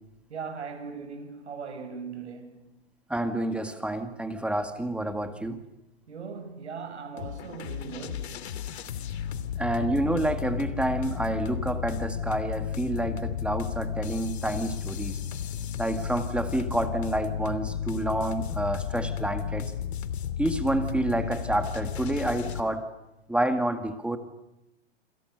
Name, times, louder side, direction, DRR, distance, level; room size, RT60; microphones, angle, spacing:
voice 1, 0.3-2.7 6.1-8.8 9.5-9.6, right 5 dB, 85° right, 7.3 m, -39 dB
voice 2, 3.1-5.6 9.6-15.2 15.8-19.7 20.4-22.8 23.3-24.2, right 1 dB, 5° right, 2.0 m, -28 dB
sound 1, 7.2-22.6, left 9 dB, 70° left, 2.8 m, -33 dB
28.5 x 27.0 x 6.7 m
hypercardioid pair, 130°, 33 cm